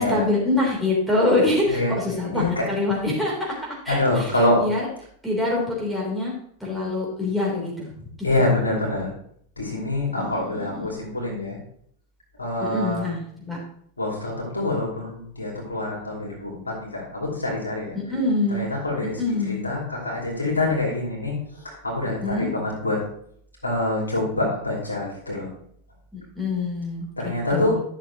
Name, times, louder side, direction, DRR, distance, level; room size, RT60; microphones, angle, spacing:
voice 1, 0.0-3.6 3.8-4.3 4.6-4.8 5.2-6.3 6.6-8.1 10.2-10.7 12.6-13.6 17.9-18.6 19.2-19.6 22.0-22.5 26.1-27.1 27.5-27.8, left 2 dB, 5° right, -4 dB, 3.4 m, -25 dB
voice 2, 2.3-2.6 3.9-4.6 8.2-9.1 9.6-11.6 12.4-13.1 14.0-18.0 18.5-21.3 21.6-23.0 23.6-25.5 27.2-27.7, left 2 dB, 80° left, -2 dB, 3.0 m, -25 dB
12.0 x 6.6 x 3.0 m, 0.65 s
figure-of-eight pair, 90°, 0 cm